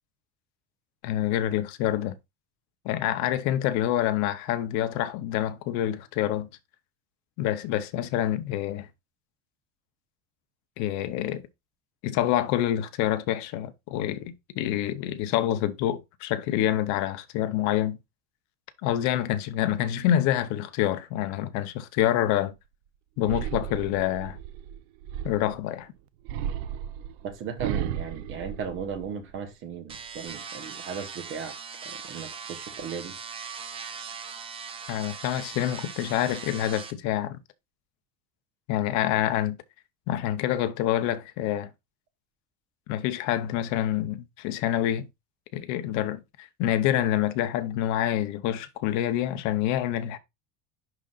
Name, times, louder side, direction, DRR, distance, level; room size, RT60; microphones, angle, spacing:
voice 1, 1.0-2.1 2.8-6.5 7.4-8.9 10.8-11.4 12.0-18.0 18.8-22.5 23.2-24.4 25.2-25.9 34.9-37.4 38.7-39.6 40.1-41.7 42.9-45.1 45.5-50.2, left 12 dB, 50° left, 0.7 m, -27 dB
sound 1, 23.2-25.6 26.2-29.3 29.7-30.3, right 10 dB, 75° right, 0.7 m, -34 dB
voice 2, 27.2-31.6 31.8-33.2, right 6 dB, 35° right, 1.1 m, -36 dB
sound 2, 29.9-36.9, right 6 dB, 15° right, 0.4 m, -40 dB
11.0 x 3.8 x 2.4 m
cardioid pair, 175°, 35 cm